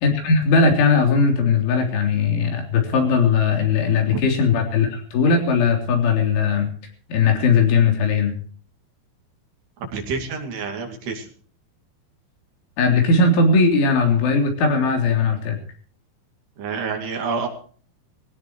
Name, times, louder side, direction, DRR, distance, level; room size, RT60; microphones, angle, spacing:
voice 1, 0.0-6.7 7.1-8.3 12.8-15.6, left 4 dB, 75° left, 3 dB, 5.8 m, -18 dB
voice 2, 9.9-11.3 16.6-17.5, right 5 dB, 60° right, 3 dB, 4.2 m, -28 dB
21.0 x 17.5 x 3.1 m, 0.44 s
omnidirectional pair, 5.6 m